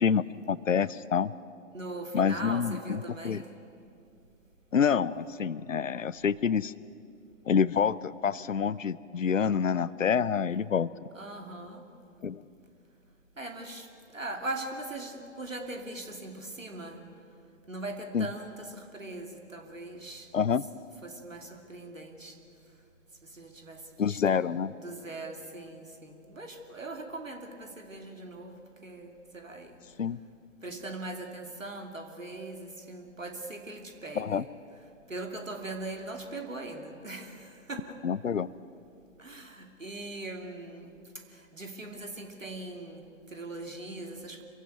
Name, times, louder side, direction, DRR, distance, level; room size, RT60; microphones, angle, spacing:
voice 1, 0.0-1.3 2.1-3.0 3.2-3.4 4.7-6.7 7.5-10.9 12.2-12.4 18.1-18.3 20.3-20.6 24.0-24.7 30.0-30.2 34.2-34.4 38.0-38.5, left 7 dB, 80° left, 19 dB, 0.6 m, -27 dB
voice 2, 1.7-3.5 11.1-11.8 13.4-13.9 14.1-17.0 17.7-20.3 21.0-22.4 23.3-29.8 30.6-34.5 35.1-38.0 39.2-40.9 41.3-44.4, right 2 dB, 85° right, 4 dB, 2.8 m, -40 dB
26.0 x 16.0 x 9.3 m, 2.5 s
figure-of-eight pair, 115°, 38 cm